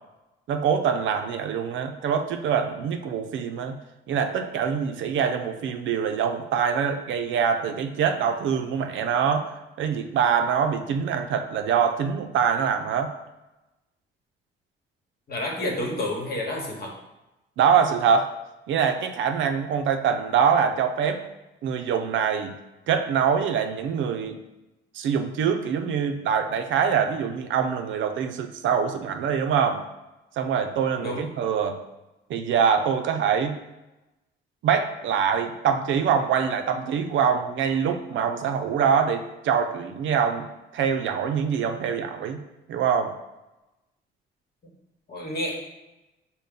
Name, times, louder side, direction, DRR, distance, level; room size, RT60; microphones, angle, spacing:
voice 1, 0.5-3.8 4.1-9.5 9.8-13.1 17.6-18.3 18.7-21.2 21.6-22.5 22.9-24.4 24.9-29.8 30.4-31.8 32.3-33.6 34.6-40.5 40.7-42.4 42.7-43.1, right 7 dB, 75° right, 6 dB, 0.5 m, -24 dB
voice 2, 15.3-16.9 31.0-31.3 45.1-45.5, left 1 dB, 55° left, 0 dB, 1.2 m, -29 dB
5.4 x 2.2 x 3.7 m, 0.99 s
cardioid pair, 90°, 20 cm